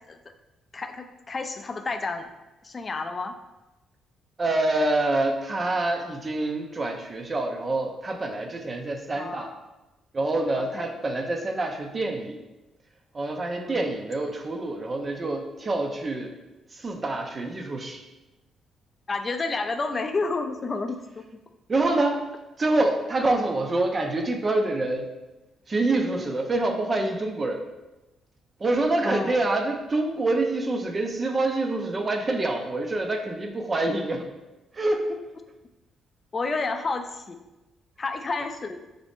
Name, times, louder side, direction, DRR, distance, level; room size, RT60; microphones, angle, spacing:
voice 1, 0.7-2.3 2.6-3.3 9.1-9.6 10.5-10.8 13.6-13.8 19.1-21.2 26.2-26.4 29.0-29.4 36.3-37.3 38.0-38.8, left 3 dB, 35° left, 7 dB, 0.4 m, -30 dB
voice 2, 4.4-9.5 10.1-12.4 13.1-16.3 16.7-18.0 21.7-22.3 22.6-25.1 25.7-27.6 28.6-34.3 34.7-35.2, right 2 dB, 30° right, 4 dB, 0.4 m, -26 dB
3.9 x 2.6 x 3.4 m, 1.0 s
cardioid pair, 90°, 0 cm